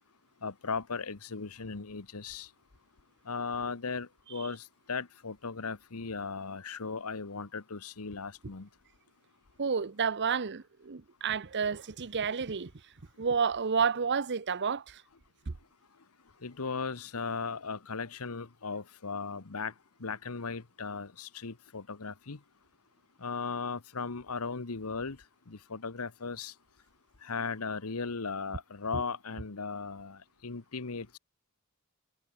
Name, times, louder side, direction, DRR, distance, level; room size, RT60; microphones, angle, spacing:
voice 1, 0.4-2.5 3.3-8.7 16.4-19.7 20.0-22.4 23.2-25.2 25.5-26.5 27.2-31.2, left 4 dB, 75° left, 1.2 m, -37 dB
voice 2, 9.6-12.7 13.2-15.0 15.5-15.6 28.9-29.0, right 6 dB, 55° right, 0.8 m, -30 dB
head